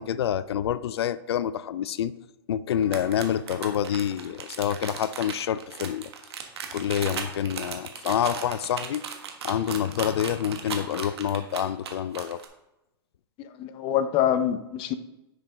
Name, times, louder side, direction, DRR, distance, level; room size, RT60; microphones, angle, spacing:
voice 1, 0.0-2.1 2.5-6.1 6.7-9.0 9.4-12.4, left 10 dB, 85° left, 0.4 m, -27 dB
sound 1, 2.8-12.4, right 7 dB, 85° right, 1.5 m, -36 dB
voice 2, 13.4-14.9, left 10 dB, 40° left, 0.8 m, -25 dB
10.5 x 6.4 x 3.8 m
hypercardioid pair, 120°, 13 cm